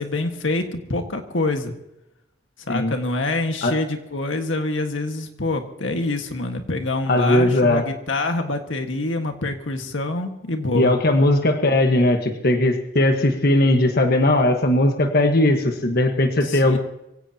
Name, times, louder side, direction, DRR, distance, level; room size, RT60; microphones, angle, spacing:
voice 1, 0.0-1.7 2.7-10.9 16.4-16.8, left 2 dB, 80° left, 5 dB, 1.7 m, -26 dB
voice 2, 7.1-7.9 10.7-16.8, left 1 dB, 55° left, 4 dB, 1.4 m, -18 dB
24.0 x 16.5 x 2.9 m, 0.86 s
head